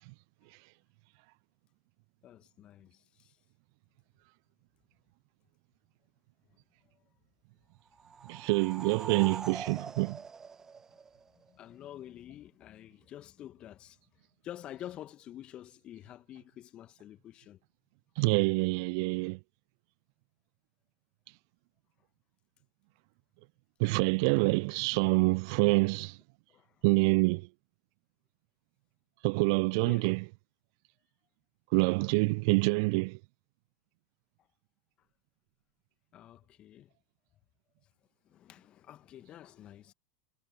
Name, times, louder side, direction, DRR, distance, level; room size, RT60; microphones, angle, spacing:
voice 1, 2.2-3.4 11.3-14.0 14.4-17.6 25.5-25.6 26.5-26.9 29.7-30.1 36.1-36.9 38.2-39.9, left 12 dB, 35° left, 1.8 m, -48 dB
sound 1, 7.9-11.5, right 5 dB, 20° right, 1.1 m, -44 dB
voice 2, 8.3-10.2 18.2-19.4 23.8-26.2 26.8-27.5 29.2-30.2 31.7-33.2, right 29 dB, 55° right, 0.3 m, -26 dB
figure-of-eight pair, 85°, 3 cm